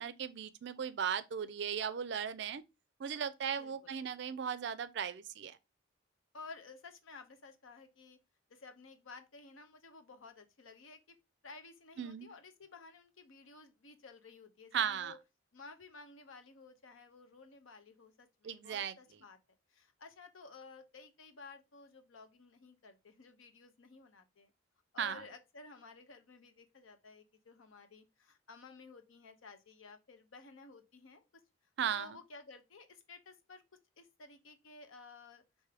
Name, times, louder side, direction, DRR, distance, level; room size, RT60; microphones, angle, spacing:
voice 1, 0.0-2.6 3.0-5.6 12.0-12.3 14.7-15.1 18.4-18.9 25.0-25.2 31.8-32.2, right 8 dB, 60° right, 0.4 m, -37 dB
voice 2, 3.6-3.9 6.3-8.2 8.5-11.2 11.4-15.2 15.5-19.4 19.7-24.5 24.9-31.2 31.9-33.6 34.0-35.4, left 4 dB, 90° left, 0.7 m, -54 dB
4.7 x 2.6 x 3.2 m
head